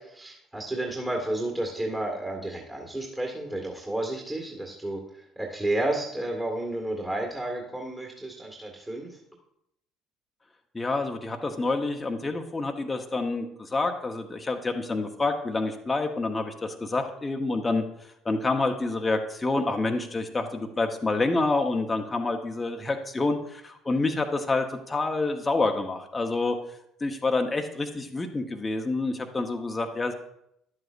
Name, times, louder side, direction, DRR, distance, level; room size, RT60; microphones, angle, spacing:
voice 1, 0.0-9.2, right 1 dB, 15° right, 0 dB, 1.9 m, -31 dB
voice 2, 10.7-30.1, left 3 dB, 20° left, 4 dB, 0.9 m, -28 dB
11.0 x 7.7 x 2.5 m, 0.78 s
hypercardioid pair, 55°, 0 cm